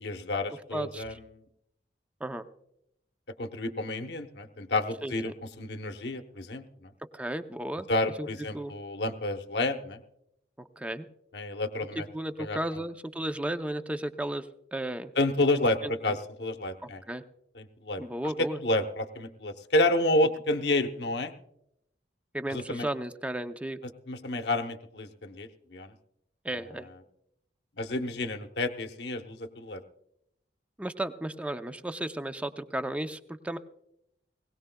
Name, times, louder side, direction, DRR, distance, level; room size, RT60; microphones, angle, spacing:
voice 1, 0.0-1.1 3.4-5.3 5.6-6.9 7.9-10.0 11.3-12.1 12.4-12.8 15.2-17.0 17.6-18.0 18.4-21.3 22.5-22.9 24.1-25.9 27.8-29.8, left 2 dB, 65° left, 7 dB, 0.9 m, -30 dB
voice 2, 0.7-1.2 2.2-2.5 5.0-5.3 7.1-7.9 8.2-8.3 8.5-8.7 10.6-11.1 11.9-15.1 15.5-15.9 16.8-17.2 18.0-18.6 22.3-23.8 26.4-26.9 30.8-33.6, right 1 dB, 5° right, 9 dB, 0.5 m, -34 dB
20.5 x 17.5 x 2.3 m, 0.79 s
head